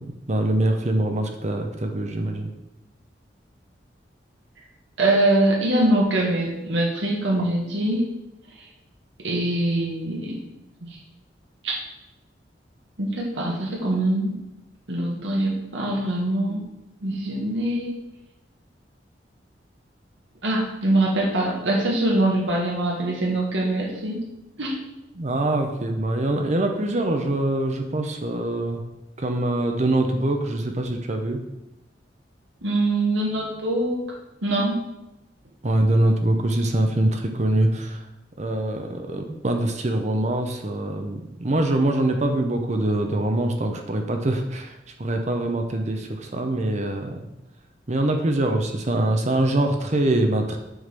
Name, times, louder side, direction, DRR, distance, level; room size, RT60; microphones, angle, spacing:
voice 1, 0.3-2.5 25.2-28.8 29.2-31.4 35.6-38.0 38.4-44.7 45.0-47.3 47.9-50.6, right 1 dB, 40° right, 4 dB, 0.8 m, -24 dB
voice 2, 5.0-8.1 9.2-10.4 11.6-11.7 13.0-14.3 14.9-16.6 17.0-17.9 20.4-24.2 24.6-24.8 32.6-34.0 34.4-34.9, right 1 dB, 85° right, -2 dB, 1.8 m, -23 dB
7.9 x 4.0 x 6.7 m, 0.94 s
head